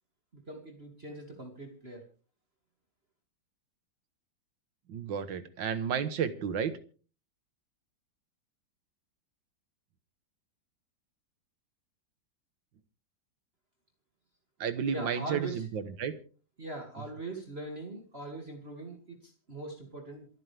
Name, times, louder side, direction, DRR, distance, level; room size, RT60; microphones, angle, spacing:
voice 1, 0.5-2.0 14.9-15.6 16.6-20.3, right 2 dB, 30° right, 2.6 m, -41 dB
voice 2, 4.9-6.8 14.6-16.2, right 7 dB, 75° right, 1.9 m, -32 dB
27.5 x 9.7 x 3.5 m
omnidirectional pair, 2.1 m